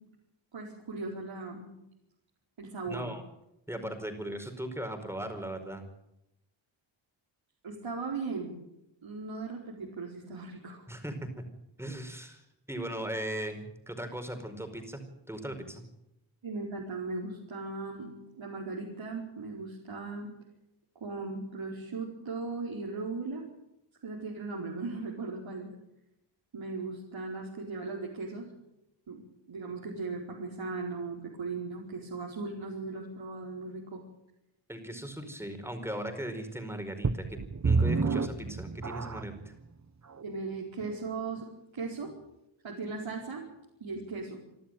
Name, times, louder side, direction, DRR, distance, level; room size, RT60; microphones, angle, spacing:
voice 1, 0.5-1.7 2.6-3.1 7.6-8.5 9.0-10.8 16.4-18.1 18.3-20.3 21.0-23.4 24.0-25.7 26.5-28.5 29.1-29.2 29.5-34.0 40.2-41.5 41.7-42.1 42.6-43.4 43.8-44.4, right 3 dB, 70° right, -2 dB, 4.9 m, -37 dB
voice 2, 2.8-3.2 3.7-5.8 10.9-11.1 11.8-15.8 34.7-39.5, right 1 dB, 5° right, 6 dB, 4.8 m, -38 dB
sound 1, 37.0-39.5 40.1-40.2 40.8-40.9, right 4 dB, 35° right, 1.2 m, -29 dB
28.0 x 12.5 x 9.3 m, 0.85 s
wide cardioid pair, 120°, 47 cm